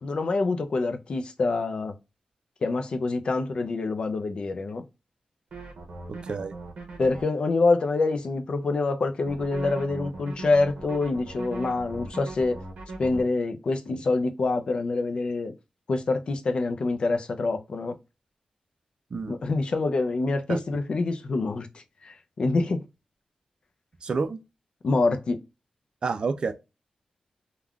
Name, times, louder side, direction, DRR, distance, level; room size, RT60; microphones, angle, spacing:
voice 1, 0.0-2.0 2.6-4.8 7.0-12.6 13.0-15.5 15.9-18.0 19.3-22.8 24.8-25.4, left 3 dB, 50° left, 0.5 m, -26 dB
sound 1, 5.5-7.2 9.2-13.2, right 2 dB, 70° right, 0.8 m, -39 dB
voice 2, 6.1-6.5 19.1-19.3 20.5-20.6 24.0-24.4 26.0-26.5, right 4 dB, 45° right, 0.4 m, -29 dB
3.5 x 2.3 x 2.3 m
wide cardioid pair, 175°, 2 cm